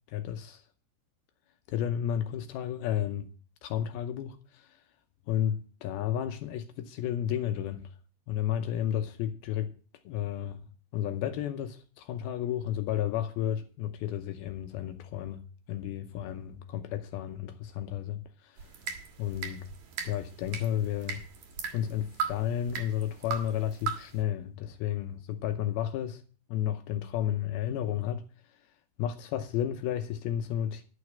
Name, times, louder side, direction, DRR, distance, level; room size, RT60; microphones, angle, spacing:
voice 1, 0.1-0.6 1.7-3.3 3.6-4.8 5.3-7.9 8.3-9.7 10.1-10.7 10.9-18.7 19.2-19.7 20.0-21.2 21.7-26.2 26.5-28.2 28.5-28.6 29.0-30.8, left 10 dB, 75° left, 2.4 m, -32 dB
sound 1, 18.6-24.2, right 6 dB, 55° right, 2.5 m, -38 dB
12.0 x 6.4 x 7.4 m
omnidirectional pair, 4.8 m